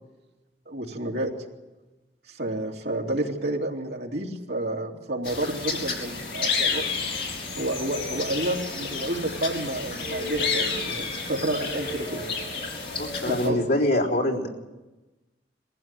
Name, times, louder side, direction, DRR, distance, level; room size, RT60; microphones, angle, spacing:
voice 1, 0.7-1.3 2.3-7.0 7.6-12.2 13.3-13.6, right 1 dB, 65° right, 0 dB, 3.0 m, -30 dB
sound 1, 5.2-13.5, left 4 dB, 50° left, 4.7 m, -30 dB
voice 2, 12.9-14.5, left 1 dB, 70° left, -3 dB, 3.8 m, -24 dB
22.0 x 15.5 x 9.2 m, 1.1 s
head